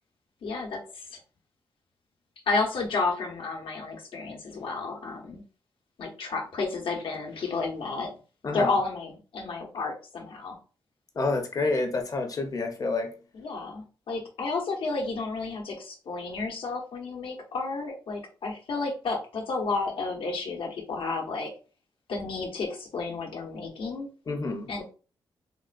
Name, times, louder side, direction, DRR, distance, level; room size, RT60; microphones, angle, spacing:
voice 1, 0.4-1.1 2.5-5.4 6.0-8.1 8.5-10.6 13.3-21.5 22.1-24.1 24.7-24.9, left 3 dB, 75° left, 0.9 m, -31 dB
voice 2, 11.2-13.1 24.3-24.7, left 3 dB, 40° left, 0.7 m, -28 dB
3.6 x 2.2 x 2.5 m
wide cardioid pair, 105°, 9 cm